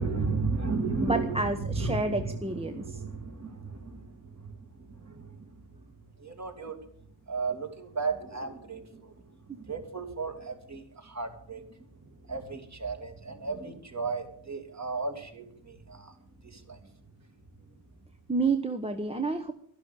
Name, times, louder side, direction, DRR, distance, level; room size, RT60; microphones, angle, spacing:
voice 1, 0.0-5.6 6.2-6.8 7.3-9.1 9.6-16.1 16.4-16.8, right 4 dB, 35° right, 5 dB, 2.6 m, -34 dB
voice 2, 1.0-3.0 9.5-9.6 18.3-19.5, right 3 dB, 10° right, 6 dB, 0.9 m, -30 dB
12.5 x 11.5 x 8.0 m, 0.65 s
wide cardioid pair, 115°, 49 cm